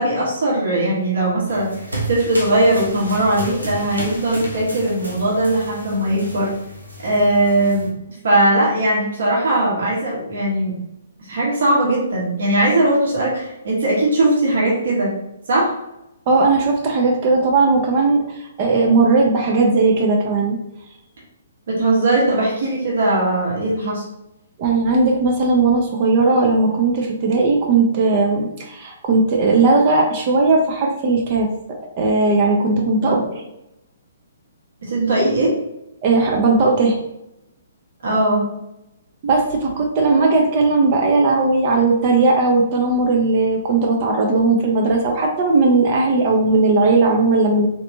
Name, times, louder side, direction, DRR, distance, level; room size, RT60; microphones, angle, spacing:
voice 1, 0.0-1.7 2.1-6.5 7.0-7.9 8.2-10.8 11.2-15.1 15.5-15.7 21.7-24.0 33.0-33.1 34.8-35.5 38.0-38.4, right 1 dB, 60° right, -5 dB, 1.4 m, -19 dB
sound 1, 1.5-7.9, right 1 dB, 85° right, 0.8 m, -32 dB
voice 2, 16.3-20.6 24.6-31.5 32.0-33.4 36.0-37.0 39.2-47.7, right 3 dB, 40° right, 0 dB, 0.6 m, -17 dB
3.2 x 2.8 x 2.7 m, 0.86 s
figure-of-eight pair, 125°, 0 cm